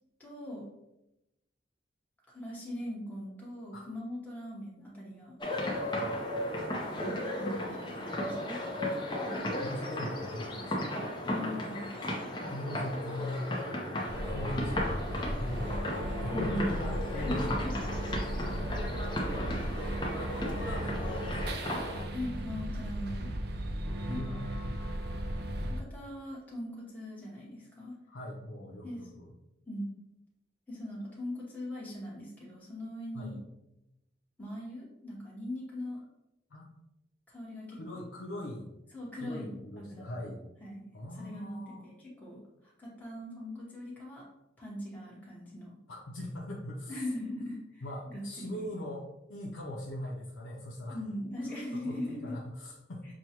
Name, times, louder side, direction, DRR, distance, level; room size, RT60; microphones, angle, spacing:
voice 1, 0.2-0.7 2.3-5.4 6.9-8.8 11.2-11.9 16.3-16.8 17.1-17.7 18.2-18.5 22.1-23.3 24.1-24.4 25.6-27.9 28.8-29.1 29.7-29.9 30.7-33.4 34.4-36.0 37.3-38.1 38.9-40.3 40.6-40.8 41.2-44.3 44.6-45.7 46.9-47.8 48.1-48.7 50.9-52.4, left 1 dB, 10° left, -6 dB, 1.0 m, -40 dB
sound 1, 5.4-22.0, left 1 dB, 25° left, 0.6 m, -35 dB
voice 2, 9.6-10.9 12.5-15.0 15.3-17.6 20.2-21.6 24.0-24.7 28.1-29.3 33.1-33.3 36.5-36.6 37.8-38.7 39.2-40.4 40.9-41.8 45.9-47.0 47.8-51.0 51.5-53.0, left 1 dB, 85° left, -3 dB, 0.6 m, -40 dB
sound 2, 14.1-25.8, equal, 55° right, 0.4 m, -36 dB
6.0 x 2.2 x 2.9 m, 0.91 s
head